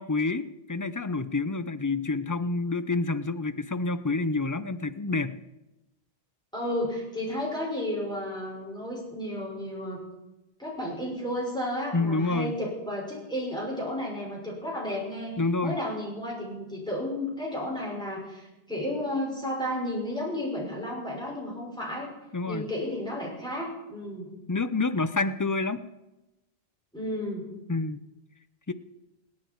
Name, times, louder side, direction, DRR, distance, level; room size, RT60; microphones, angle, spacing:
voice 1, 0.0-5.4 11.9-12.5 15.4-15.7 22.3-22.7 24.5-25.8 27.7-28.0 28.7-28.8, left 3 dB, 25° left, 12 dB, 0.5 m, -28 dB
voice 2, 6.5-10.0 10.6-15.3 15.6-22.1 22.5-24.3 26.9-27.5, left 1 dB, 5° left, -4 dB, 6.0 m, -32 dB
28.0 x 9.6 x 4.6 m, 1.0 s
omnidirectional pair, 1.1 m